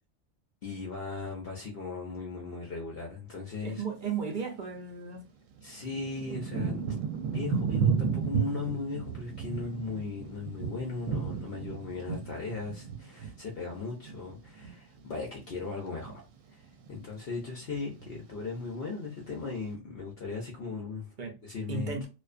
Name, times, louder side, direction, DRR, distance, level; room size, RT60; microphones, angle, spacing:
voice 1, 0.6-3.8 5.6-6.8 7.1-16.2 16.5-16.6 16.9-21.1 21.4-22.1, left 4 dB, 55° left, 0.8 m, -37 dB
voice 2, 3.6-5.2 21.2-21.4 21.7-22.1, right 6 dB, 55° right, 0.6 m, -35 dB
Thunder / Rain, 4.8-4.9 5.6-15.1 15.4-16.2 16.8-17.2 17.4-18.2 18.8-18.9, right 6 dB, 75° right, 0.9 m, -33 dB
2.4 x 2.3 x 2.4 m
omnidirectional pair, 1.4 m